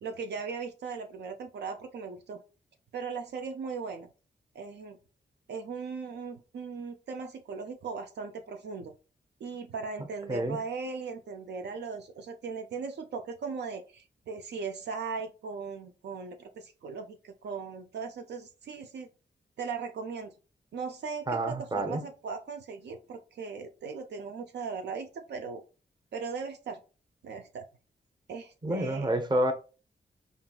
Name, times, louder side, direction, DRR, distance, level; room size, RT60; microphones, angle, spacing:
voice 1, 0.0-2.4 2.9-4.1 4.5-5.0 5.5-8.9 9.4-19.1 19.6-20.3 20.7-25.6 26.1-26.8 27.2-27.7 28.3-29.2, right 5 dB, 70° right, 6 dB, 0.4 m, -38 dB
voice 2, 21.3-22.0 28.6-29.5, right 1 dB, 25° right, 7 dB, 0.7 m, -28 dB
3.8 x 2.4 x 2.3 m, 0.34 s
cardioid pair, 45°, 18 cm